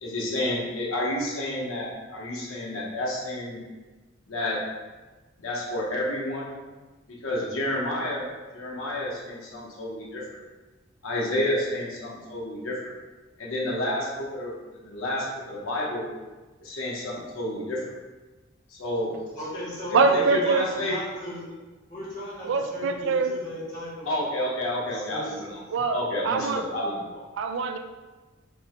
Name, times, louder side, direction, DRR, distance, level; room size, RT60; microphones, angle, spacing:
voice 1, 0.0-3.6 4.3-4.6 5.4-6.5 7.2-8.3 8.5-10.4 11.0-12.9 13.4-16.1 16.6-17.8 18.7-19.1 19.9-21.0 24.1-25.6 25.9-27.3, left 1 dB, 90° left, -3 dB, 0.9 m, -30 dB
voice 2, 19.4-21.4 21.9-24.1 24.4-24.6 24.9-25.4, equal, 40° left, -8 dB, 1.4 m, -37 dB
voice 3, 19.9-20.7 22.5-23.3 25.7-26.6 27.4-27.8, right 4 dB, 65° right, 7 dB, 0.3 m, -23 dB
5.2 x 2.2 x 3.0 m, 1.2 s
head